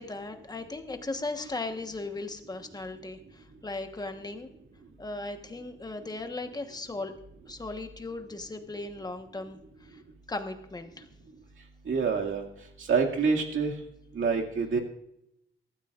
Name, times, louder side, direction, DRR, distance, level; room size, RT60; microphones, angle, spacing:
voice 1, 0.0-4.5 5.0-7.1 7.5-9.6 9.9-10.0 10.3-11.1, left 2 dB, 20° left, 6 dB, 1.2 m, -37 dB
voice 2, 11.9-12.4 12.8-13.7 14.1-14.8, right 5 dB, 75° right, 0 dB, 2.2 m, -26 dB
23.5 x 13.0 x 2.5 m, 0.80 s
wide cardioid pair, 150°, 21 cm